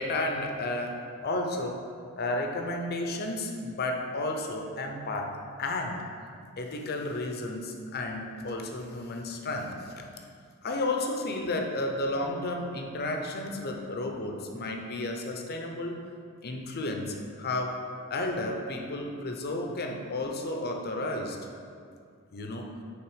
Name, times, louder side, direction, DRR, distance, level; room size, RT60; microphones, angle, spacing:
voice 1, 0.0-1.8 2.2-6.0 6.6-9.9 10.6-16.0 16.4-21.4 22.3-22.8, left 2 dB, 45° left, 3 dB, 0.6 m, -32 dB
6.0 x 3.9 x 4.9 m, 2.2 s
head